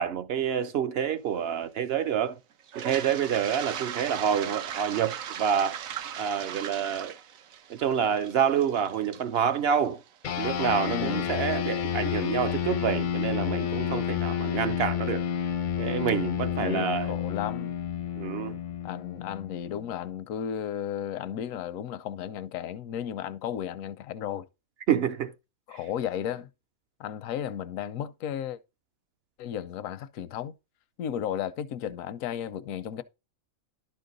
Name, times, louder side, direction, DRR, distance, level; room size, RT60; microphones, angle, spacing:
voice 1, 0.0-2.4 2.7-5.8 6.2-7.2 7.7-10.0 10.4-15.2 15.8-17.1 18.2-18.6 24.9-25.3, right 8 dB, 60° right, 0.7 m, -28 dB
Toilet flush, 2.6-10.6, right 9 dB, 80° right, 1.1 m, -38 dB
sound 1, 10.2-20.0, left 9 dB, 55° left, 0.5 m, -30 dB
voice 2, 10.9-11.3 16.6-17.7 18.8-24.5 25.7-26.5 27.0-28.6 29.4-30.5 31.0-33.0, left 9 dB, 80° left, 1.0 m, -34 dB
11.5 x 4.6 x 3.9 m
omnidirectional pair, 1.4 m